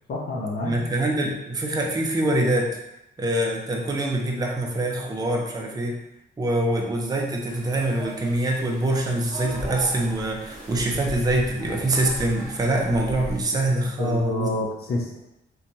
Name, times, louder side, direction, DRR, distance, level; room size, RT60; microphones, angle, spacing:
voice 1, 0.1-0.8 14.0-15.2, left 2 dB, 60° left, -1 dB, 0.5 m, -28 dB
voice 2, 0.6-2.8 3.2-6.0 6.4-14.5, right 1 dB, 20° right, 0 dB, 0.4 m, -24 dB
sound 1, 7.5-13.4, equal, ahead, 1.1 m, -38 dB
2.8 x 2.2 x 2.6 m, 0.87 s
cardioid pair, 85°, 19 cm